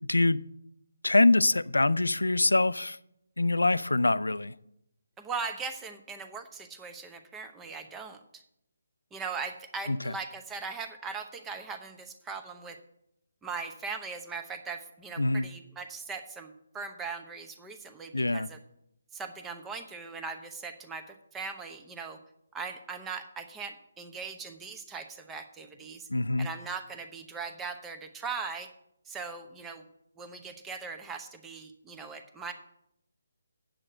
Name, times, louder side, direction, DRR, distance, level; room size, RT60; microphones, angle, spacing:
voice 1, 0.1-0.4 1.0-3.0 3.4-4.5 9.9-10.1 15.2-15.5 18.1-18.5 26.1-26.5, left 2 dB, 85° left, 0.4 m, -24 dB
voice 2, 5.2-8.2 9.1-12.8 13.4-18.6 19.1-22.2 22.5-26.1 26.4-28.7 29.1-29.8 30.2-32.5, right 5 dB, 10° right, 0.9 m, -39 dB
8.9 x 7.8 x 6.7 m
figure-of-eight pair, 150°, 0 cm